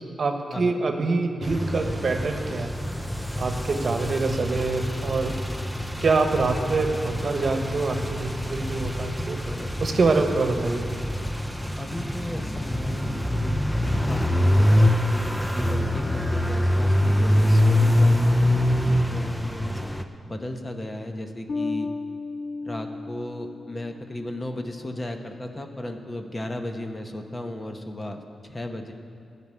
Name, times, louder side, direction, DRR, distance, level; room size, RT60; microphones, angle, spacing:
voice 1, 0.2-2.7 3.4-5.3 6.0-9.4 9.8-10.9, right 3 dB, 55° right, 5 dB, 1.2 m, -25 dB
sound 1, 1.4-20.0, left 1 dB, 5° left, 0.7 m, -24 dB
voice 2, 11.8-13.6 14.1-14.7 15.1-19.8 20.3-21.9 22.6-28.9, left 1 dB, 25° left, 5 dB, 1.0 m, -35 dB
Bass guitar, 21.5-24.1, left 3 dB, 65° left, 0.4 m, -33 dB
13.0 x 6.0 x 9.4 m, 2.6 s
cardioid pair, 80°, 0 cm